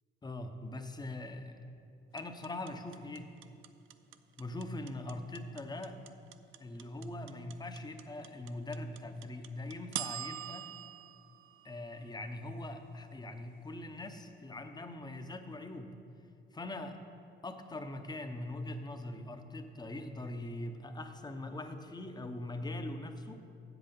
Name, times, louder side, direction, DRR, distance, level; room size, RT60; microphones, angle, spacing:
voice 1, 0.2-1.6 2.1-3.3 4.4-6.0 6.6-10.7 11.6-15.9 16.5-16.9 17.4-23.4, left 1 dB, 20° left, 7 dB, 0.8 m, -42 dB
sound 1, 2.2-12.3, right 12 dB, 85° right, 0.4 m, -44 dB
8.0 x 7.8 x 5.3 m, 2.6 s
cardioid pair, 90°, 20 cm